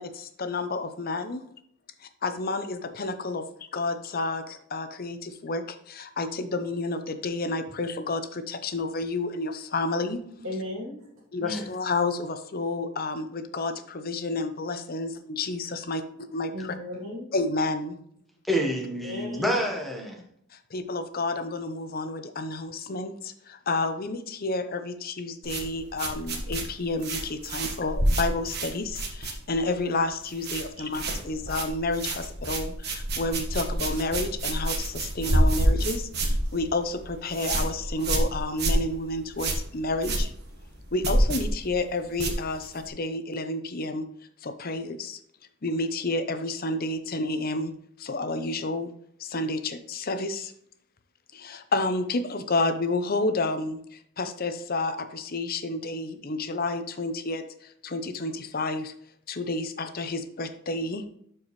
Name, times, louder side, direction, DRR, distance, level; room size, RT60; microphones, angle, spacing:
voice 1, 0.0-1.4 2.0-10.2 11.3-16.5 17.3-18.0 20.5-40.3 40.9-44.0 44.4-45.2 45.6-47.7 48.0-48.9 49.2-50.5 51.3-58.9 59.3-61.1, left 2 dB, 45° left, 9 dB, 0.7 m, -30 dB
voice 2, 10.4-11.1 16.5-17.3 18.5-18.7 19.0-19.6, left 1 dB, 75° right, -3 dB, 2.8 m, -36 dB
voice 3, 18.4-20.3, equal, ahead, -1 dB, 1.1 m, -28 dB
sound 1, 25.4-29.8 30.0-30.7 30.9-42.9, right 1 dB, 50° right, 1.4 m, -28 dB
12.0 x 4.6 x 3.1 m, 0.67 s
head